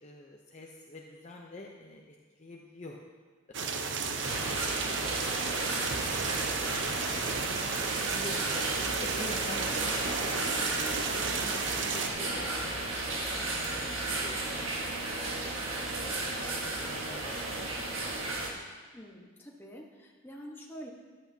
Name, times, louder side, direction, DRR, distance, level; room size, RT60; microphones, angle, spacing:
voice 1, 0.0-2.0 2.4-3.0 3.6-5.2 5.5-10.7 11.3-14.4 14.8-18.3, left 2 dB, 35° left, 0 dB, 0.7 m, -48 dB
sound 1, 3.5-12.1, right 5 dB, 60° right, 0.7 m, -34 dB
sound 2, 4.2-18.5, right 2 dB, 85° right, 1.6 m, -34 dB
voice 2, 18.9-20.9, equal, 10° left, -1 dB, 1.2 m, -47 dB
14.0 x 10.5 x 2.8 m, 1.4 s
head